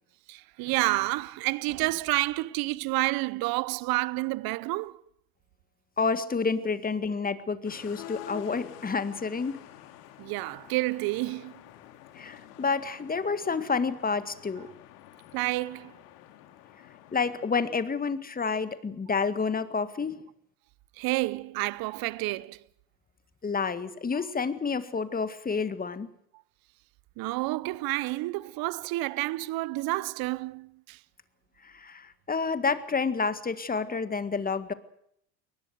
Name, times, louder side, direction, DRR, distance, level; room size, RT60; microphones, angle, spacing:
voice 1, 0.3-5.0 10.2-11.5 15.3-15.9 21.0-22.6 27.2-31.0, right 20 dB, 45° right, 0.9 m, -29 dB
voice 2, 6.0-9.6 12.2-14.7 17.1-20.2 23.4-26.1 31.6-34.7, left 5 dB, 15° left, 1.9 m, -29 dB
sound 1, 7.6-17.7, left 12 dB, 65° left, 3.3 m, -48 dB
22.0 x 19.5 x 8.1 m
hypercardioid pair, 90°, 49 cm